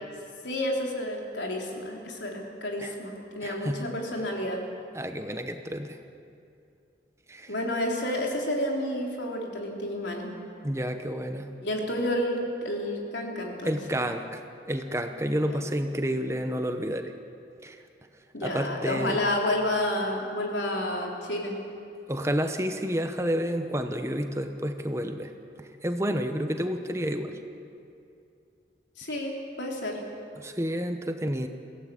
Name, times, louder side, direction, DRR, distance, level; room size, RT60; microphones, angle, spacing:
voice 1, 0.4-4.6 7.5-10.3 11.6-13.8 15.4-15.6 18.3-21.6 29.0-30.0, left 1 dB, 90° left, 0 dB, 3.8 m, -30 dB
voice 2, 3.4-3.9 4.9-6.0 7.3-7.5 10.6-11.5 13.6-14.4 14.7-17.1 17.6-17.8 18.4-19.2 22.1-25.3 25.6-27.4 30.4-31.5, equal, 15° right, 7 dB, 1.0 m, -30 dB
22.5 x 16.0 x 8.5 m, 2.6 s
head